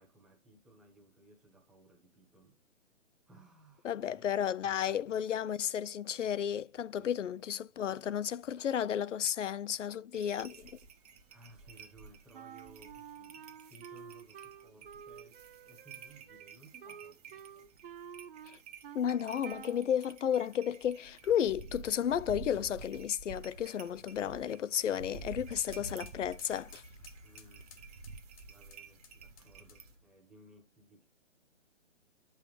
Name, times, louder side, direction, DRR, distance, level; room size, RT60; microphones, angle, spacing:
voice 1, 0.0-2.6 3.3-4.2 4.6-5.2 7.0-7.1 11.3-17.7 27.2-28.0 28.5-31.1, right 1 dB, ahead, 1.2 m, -60 dB
voice 2, 3.8-10.7 18.9-26.8, left 9 dB, 70° left, 0.6 m, -33 dB
sound 1, 10.1-29.9, right 5 dB, 30° right, 0.9 m, -51 dB
Wind instrument woodwind instrument, 12.3-19.1 19.4-19.9, right 8 dB, 45° right, 0.5 m, -50 dB
sound 2, 23.4-30.1, left 3 dB, 30° left, 0.9 m, -55 dB
9.4 x 5.6 x 3.2 m
hypercardioid pair, 145°, 38 cm